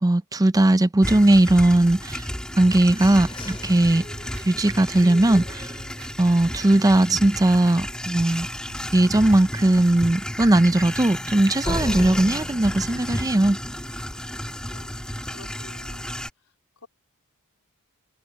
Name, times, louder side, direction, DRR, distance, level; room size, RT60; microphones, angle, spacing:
voice 1, 0.0-2.3 2.6-4.0 4.4-5.7 6.2-8.5 8.9-13.6, right 1 dB, 15° right, 0.5 m, -19 dB
sound 1, 1.0-16.3, equal, 5° left, 1.7 m, -33 dB
sound 2, 2.4-6.2 6.7-6.8 7.2-7.6 8.0-8.1 8.5-8.6 11.6-14.3, left 1 dB, 25° left, 3.0 m, -36 dB
sound 3, 3.5-4.5 4.9-6.1 6.4-6.8 7.2-7.8 8.3-8.4 8.7-9.4 9.8-9.9, right 2 dB, 70° right, 2.3 m, -45 dB
voice 2, 14.6-16.1 16.4-16.9, left 3 dB, 90° left, 3.8 m, -50 dB
head